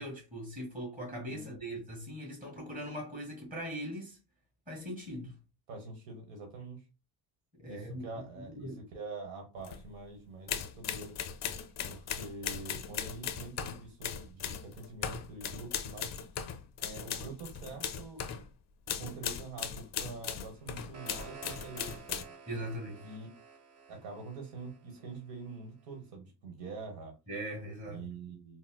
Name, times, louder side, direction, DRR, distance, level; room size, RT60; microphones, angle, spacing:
voice 1, 0.0-4.2 4.7-5.3 7.6-8.1 8.4-8.8 22.5-23.1 27.3-28.1, equal, 15° right, 1.8 m, -40 dB
voice 2, 1.3-1.6 5.7-6.8 7.6-11.2 11.9-16.1 16.8-18.2 19.0-22.3 23.0-23.3 23.9-27.1 27.8-28.6, right 3 dB, 75° right, 1.3 m, -45 dB
sound 1, 9.6-9.8 10.5-18.5 18.9-22.2, left 8 dB, 40° left, 0.4 m, -38 dB
sound 2, 20.5-25.6, right 5 dB, 35° right, 0.7 m, -52 dB
4.0 x 2.1 x 2.2 m
cardioid pair, 105°, 46 cm